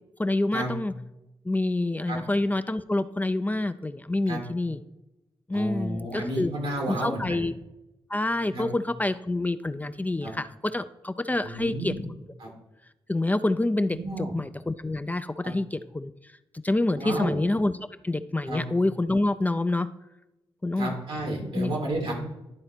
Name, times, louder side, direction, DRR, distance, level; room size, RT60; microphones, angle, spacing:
voice 1, 0.2-0.9 1.4-4.8 5.5-6.5 6.9-7.5 8.1-11.9 13.1-16.1 16.5-17.8 18.0-19.9 20.6-21.0 21.6-21.7, left 2 dB, 15° left, 11 dB, 0.4 m, -27 dB
voice 2, 5.5-7.4 8.5-8.6 10.2-10.3 11.4-12.0 12.4-12.5 13.9-14.3 15.4-15.5 16.9-17.4 18.5-18.6 20.8-22.1, right 1 dB, 75° right, 0 dB, 2.3 m, -31 dB
11.0 x 3.9 x 4.4 m, 0.94 s
supercardioid pair, 45°, 10 cm